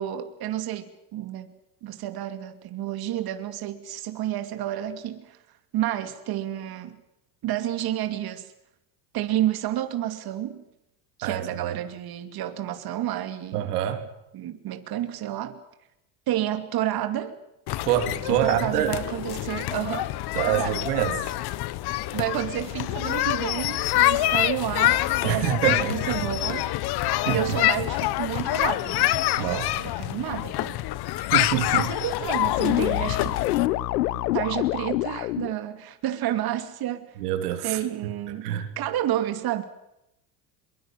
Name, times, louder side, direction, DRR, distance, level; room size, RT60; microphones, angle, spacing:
voice 1, 0.0-1.5 1.8-5.4 5.7-7.0 7.4-8.5 9.1-10.6 11.2-13.7 14.3-15.6 16.3-17.4 18.2-20.1 20.5-20.9 22.1-26.7 27.2-29.1 29.4-30.8 31.7-33.3 34.1-37.1 37.6-39.6, right 12 dB, 55° right, 2.5 m, -30 dB
voice 2, 13.5-14.1 17.9-18.9 20.3-21.3 25.2-26.3 27.3-27.6 29.4-29.7 31.3-31.9 37.2-38.1 38.4-38.7, right 11 dB, 90° right, 3.0 m, -26 dB
sound 1, 17.7-33.7, left 16 dB, 60° left, 1.3 m, -26 dB
sound 2, 32.4-35.5, left 17 dB, 90° left, 0.9 m, -26 dB
23.0 x 22.5 x 7.4 m
supercardioid pair, 90°, 45 cm